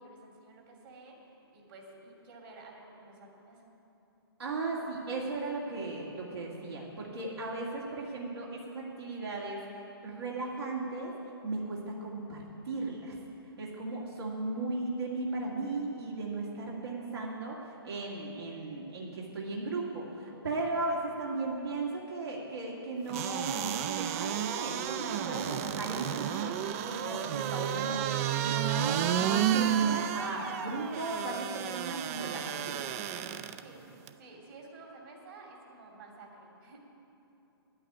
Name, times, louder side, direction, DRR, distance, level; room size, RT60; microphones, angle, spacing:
voice 1, 0.0-3.7 33.6-33.8 34.2-36.8, right 3 dB, 60° right, 0 dB, 2.9 m, -52 dB
voice 2, 4.4-9.6 10.0-11.1 11.4-13.2 13.6-17.6 17.8-28.2 28.4-32.8, right 3 dB, 75° right, -4 dB, 2.4 m, -36 dB
sound 1, 23.1-33.6 34.1-34.2, right 10 dB, 35° right, 0.5 m, -32 dB
9.7 x 8.8 x 9.3 m, 3.0 s
hypercardioid pair, 130°, 13 cm